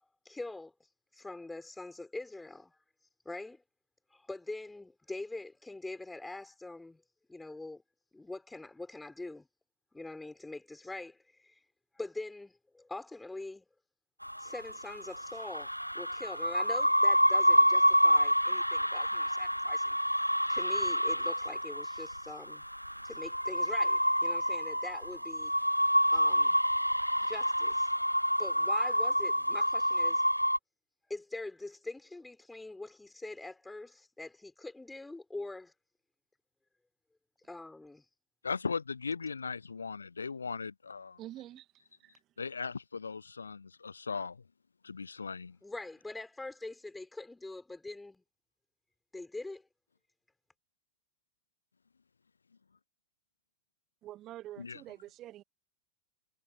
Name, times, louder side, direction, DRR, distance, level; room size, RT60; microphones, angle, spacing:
voice 1, 0.3-0.7 1.1-2.7 3.3-3.6 4.1-7.0 7.3-7.8 8.1-9.5 9.9-11.6 12.0-13.7 14.4-20.0 20.5-22.6 23.0-25.5 26.1-26.6 27.2-27.9 28.4-30.3 31.1-35.7 37.4-38.1 45.6-48.2 49.1-49.6, left 2 dB, 5° left, 5.4 m, -44 dB
sound 1, 14.2-30.6, equal, 90° right, 0.8 m, -28 dB
voice 2, 38.4-41.2 42.4-44.4 44.8-45.6 54.6-54.8, left 5 dB, 75° left, 0.5 m, -38 dB
voice 3, 41.2-41.7 54.0-55.4, right 14 dB, 35° right, 1.8 m, -46 dB
figure-of-eight pair, 90°, 0 cm